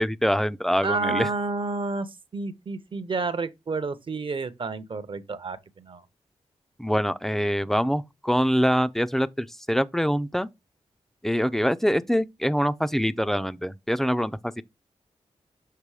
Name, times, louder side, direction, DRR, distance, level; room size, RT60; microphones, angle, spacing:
voice 1, 0.0-1.3 6.8-10.5 11.2-14.6, equal, 5° left, 0.4 m, -24 dB
voice 2, 0.8-6.0, right 3 dB, 45° right, 0.7 m, -30 dB
6.7 x 3.0 x 4.8 m
wide cardioid pair, 85°, 12 cm